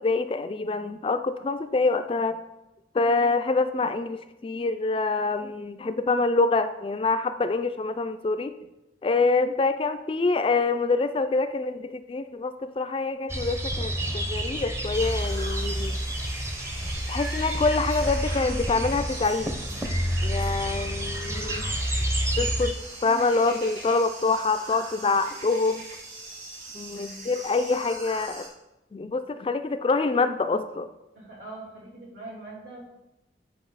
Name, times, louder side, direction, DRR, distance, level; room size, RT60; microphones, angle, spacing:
voice 1, 0.0-2.4 2.9-8.5 9.0-16.0 17.1-19.8 20.2-21.7 22.4-25.9 26.7-28.5 28.9-30.9, left 3 dB, 30° left, 9 dB, 0.3 m, -26 dB
sound 1, 13.3-22.7, right 1 dB, 15° right, 0.6 m, -29 dB
sound 2, 14.9-28.5, right 2 dB, 55° right, 2.7 m, -41 dB
voice 2, 26.9-27.2 31.1-32.9, right 2 dB, 75° right, -3 dB, 3.1 m, -42 dB
9.3 x 4.9 x 4.0 m, 0.96 s
head